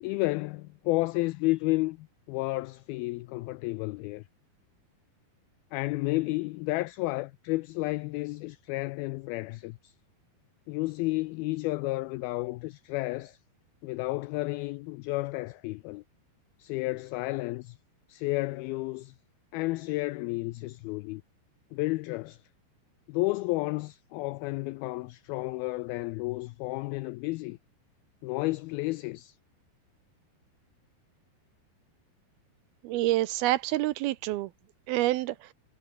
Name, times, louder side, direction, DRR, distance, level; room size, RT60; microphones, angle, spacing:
voice 1, 0.0-4.2 5.7-10.0 10.7-13.4 13.8-16.0 16.6-17.8 18.1-19.2 19.5-21.2 21.7-22.4 23.1-27.6 28.2-29.4, left 21 dB, 90° left, 2.1 m, -31 dB
voice 2, 32.8-34.5 34.9-35.5, right 16 dB, 80° right, 2.4 m, -27 dB
omnidirectional pair, 4.9 m